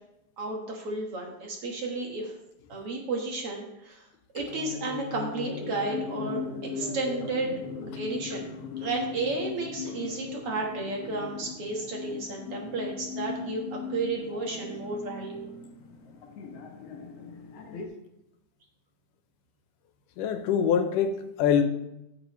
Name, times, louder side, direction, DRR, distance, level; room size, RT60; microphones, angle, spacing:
voice 1, 0.4-2.3 2.7-4.1 4.3-8.5 8.8-15.5, right 3 dB, 55° right, 0 dB, 2.2 m, -33 dB
sound 1, 4.5-17.9, left 5 dB, 60° left, 1.9 m, -38 dB
voice 2, 20.2-21.6, left 8 dB, 85° left, 8 dB, 2.4 m, -24 dB
15.0 x 7.3 x 3.1 m, 0.87 s
omnidirectional pair, 3.6 m